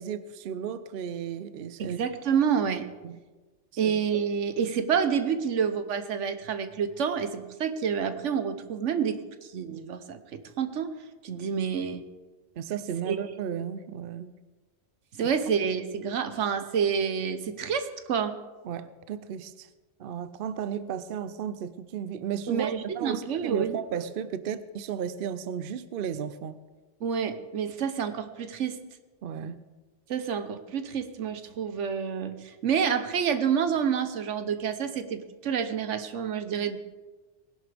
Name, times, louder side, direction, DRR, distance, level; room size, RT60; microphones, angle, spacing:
voice 1, 0.0-2.0 3.0-3.2 3.8-4.0 12.6-14.3 18.6-19.7 20.0-26.6 29.2-29.6, right 8 dB, 60° right, 0.7 m, -34 dB
voice 2, 1.8-2.9 3.8-9.2 9.5-10.9 11.2-12.0 13.1-13.2 15.1-18.4 22.5-23.8 27.0-28.8 30.1-36.8, right 7 dB, 85° right, 1.2 m, -28 dB
19.5 x 11.0 x 3.4 m
omnidirectional pair, 1.2 m